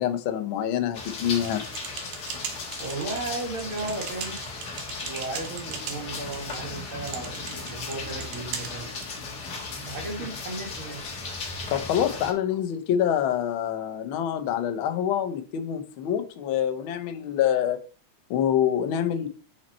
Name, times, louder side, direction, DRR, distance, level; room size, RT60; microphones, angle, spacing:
voice 1, 0.0-1.6 11.7-17.8 18.3-19.3, left 9 dB, 75° left, 7 dB, 1.2 m, -26 dB
sound 1, 0.9-12.3, left 3 dB, 45° left, 1.5 m, -36 dB
sound 2, 1.4-9.1, right 7 dB, 80° right, 2.6 m, -40 dB
voice 2, 2.8-4.4 5.0-8.9 9.9-11.0, right 3 dB, 45° right, 0 dB, 2.8 m, -35 dB
8.9 x 5.7 x 4.3 m, 0.39 s
omnidirectional pair, 3.5 m